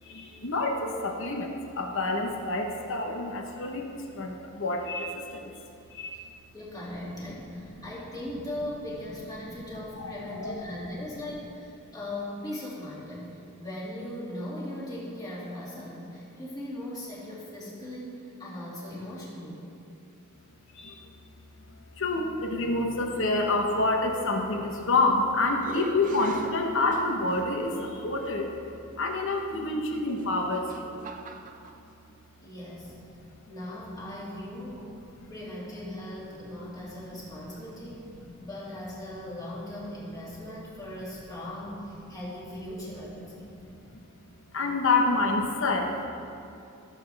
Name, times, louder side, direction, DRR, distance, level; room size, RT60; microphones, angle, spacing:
voice 1, 0.0-5.5 5.9-6.2 7.6-7.8 10.0-10.8 20.7-21.0 22.0-28.5 29.0-30.9 35.2-35.5 43.6-44.0 44.5-46.1, left 2 dB, 65° left, 2 dB, 1.1 m, -28 dB
voice 2, 6.5-19.6 32.4-32.9 33.5-35.0 35.3-38.1 38.4-43.5, left 1 dB, 20° left, -7 dB, 2.5 m, -39 dB
sound 1, 25.0-25.2 25.6-27.4 28.2-28.3 30.1-31.8, right 4 dB, 40° right, 0.6 m, -43 dB
15.5 x 7.5 x 3.5 m, 2.6 s
head